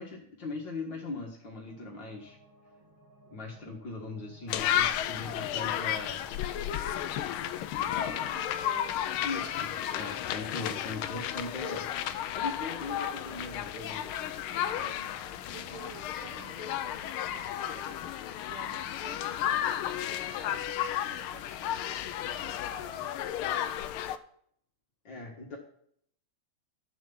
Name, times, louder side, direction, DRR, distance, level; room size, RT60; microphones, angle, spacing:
voice 1, 0.0-2.4 3.3-6.3 7.8-8.2 9.2-11.9 12.3-14.1 25.0-25.6, left 3 dB, 60° left, -1 dB, 2.3 m, -40 dB
sound 1, 1.7-16.5, right 1 dB, 60° right, 3.2 m, -57 dB
sound 2, 4.5-24.2, left 11 dB, 85° left, 1.5 m, -33 dB
voice 2, 8.2-9.6 14.7-15.1 15.5-18.2 18.5-23.1, right 7 dB, 85° right, 4 dB, 2.0 m, -52 dB
11.5 x 7.5 x 7.0 m, 0.67 s
omnidirectional pair, 2.4 m